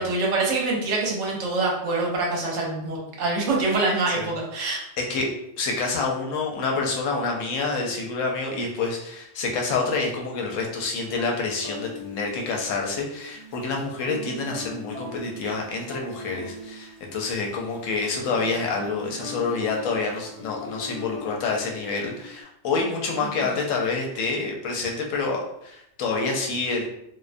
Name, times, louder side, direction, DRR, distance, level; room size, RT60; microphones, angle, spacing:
voice 1, 0.0-4.8, right 3 dB, 70° right, -2 dB, 0.9 m, -25 dB
voice 2, 4.6-26.9, left 4 dB, 80° left, 0 dB, 0.9 m, -28 dB
sound 1, 10.9-22.4, left 1 dB, 35° right, 1.0 m, -41 dB
2.4 x 2.1 x 2.4 m, 0.77 s
omnidirectional pair, 1.3 m